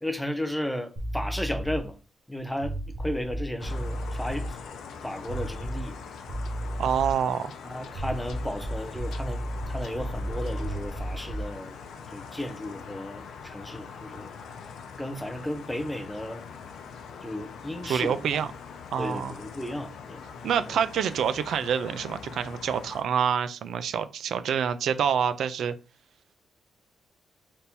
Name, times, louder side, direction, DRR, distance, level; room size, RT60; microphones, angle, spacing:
voice 1, 0.0-1.9 2.3-4.6 5.0-6.0 7.6-11.8 12.1-14.3 15.0-16.4 17.2-18.2 19.0-20.2, left 1 dB, 5° left, 0.5 m, -34 dB
sound 1, 1.0-1.9 2.6-4.5 5.3-6.0 6.3-7.2 7.9-11.6, right 1 dB, 35° right, 0.9 m, -33 dB
sound 2, 3.6-23.0, left 6 dB, 75° left, 0.6 m, -43 dB
voice 2, 6.8-7.5 17.8-18.5 18.9-19.4 20.4-25.7, right 8 dB, 65° right, 0.4 m, -27 dB
3.5 x 2.7 x 4.3 m
wide cardioid pair, 165°, 0 cm